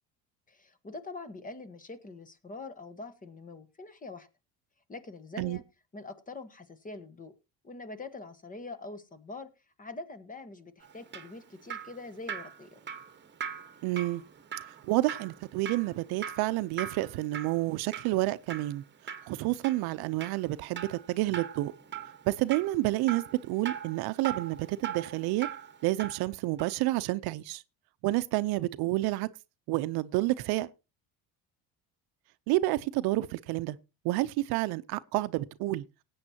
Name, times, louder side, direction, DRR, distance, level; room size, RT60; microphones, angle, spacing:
voice 1, 0.5-4.3 4.9-5.6 5.9-7.3 7.6-9.5 9.8-12.8, left 3 dB, 20° left, 1.3 m, -44 dB
Drip, 10.8-26.3 26.6-26.7, right 8 dB, 30° right, 1.3 m, -41 dB
voice 2, 13.8-14.2 14.8-18.8 19.3-21.7 22.3-25.5 25.8-27.6 28.0-29.3 29.7-30.7 32.5-33.8 34.0-35.8, right 18 dB, 70° right, 0.7 m, -29 dB
19.0 x 8.7 x 2.8 m
cardioid pair, 120°, 39 cm